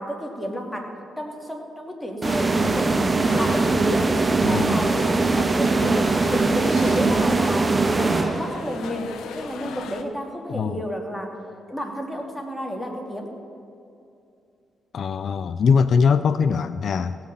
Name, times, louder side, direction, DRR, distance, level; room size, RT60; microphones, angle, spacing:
voice 1, 0.0-3.1 3.3-11.3 11.7-13.3, equal, 5° left, 1 dB, 2.5 m, -31 dB
sound 1, 2.2-10.0, left 5 dB, 80° left, 0.9 m, -36 dB
sound 2, 2.2-8.8, right 3 dB, 30° right, 0.6 m, -21 dB
voice 2, 4.4-4.7 10.5-10.8 14.9-17.2, left 6 dB, 60° left, 13 dB, 0.4 m, -21 dB
16.5 x 5.8 x 8.5 m, 2.6 s
supercardioid pair, 65°, 0 cm